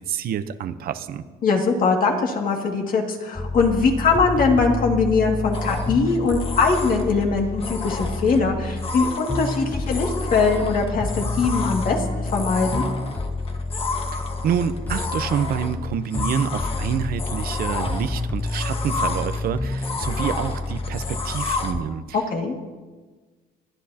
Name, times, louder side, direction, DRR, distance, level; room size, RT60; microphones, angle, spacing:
voice 1, 0.0-1.2 14.1-22.2, right 8 dB, 65° right, 10 dB, 0.8 m, -27 dB
voice 2, 1.4-12.9 22.1-22.6, left 4 dB, 55° left, 1 dB, 2.3 m, -21 dB
sound 1, 3.4-21.8, left 2 dB, 10° left, 0.4 m, -29 dB
sound 2, 5.5-21.7, left 4 dB, 35° left, 1.5 m, -32 dB
26.0 x 11.0 x 2.9 m, 1.3 s
cardioid pair, 110°, 17 cm